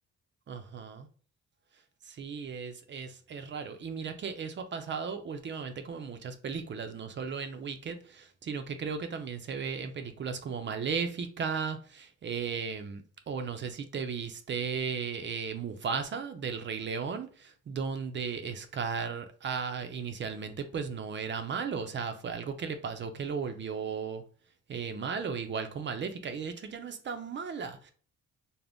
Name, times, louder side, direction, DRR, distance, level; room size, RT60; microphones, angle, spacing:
voice 1, 0.5-1.1 2.1-24.2 24.7-27.9, right 6 dB, 40° right, 0.5 m, -35 dB
2.5 x 2.1 x 3.4 m
cardioid pair, 90°, 30 cm